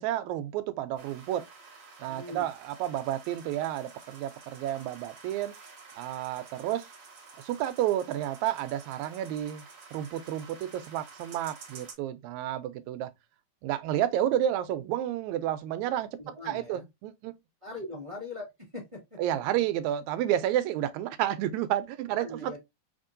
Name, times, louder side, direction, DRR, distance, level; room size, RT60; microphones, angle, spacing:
voice 1, 0.0-1.4 2.0-5.5 6.0-6.9 7.4-9.6 9.9-13.1 13.6-16.1 16.5-17.4 19.2-22.6, right 12 dB, 80° right, 1.9 m, -30 dB
sound 1, 1.0-11.9, right 4 dB, 50° right, 1.5 m, -50 dB
voice 2, 2.0-2.4 16.2-16.8 17.6-18.4 18.7-19.2 22.1-22.6, left 2 dB, 35° right, 0.5 m, -40 dB
4.1 x 3.6 x 2.5 m
omnidirectional pair, 3.3 m